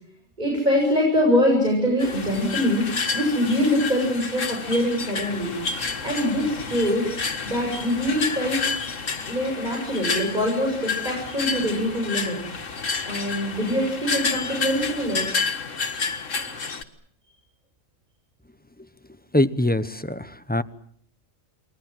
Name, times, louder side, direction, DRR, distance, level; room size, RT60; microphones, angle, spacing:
voice 1, 0.4-2.9 3.1-5.5 6.0-7.0 7.4-8.6 9.3-12.4 13.0-15.3, equal, 35° right, -1 dB, 7.9 m, -23 dB
sound 1, 2.0-16.8, left 4 dB, 85° left, 2.1 m, -30 dB
voice 2, 19.3-20.6, left 1 dB, 10° left, 13 dB, 0.9 m, -23 dB
30.0 x 22.0 x 7.7 m, 0.65 s
omnidirectional pair, 1.3 m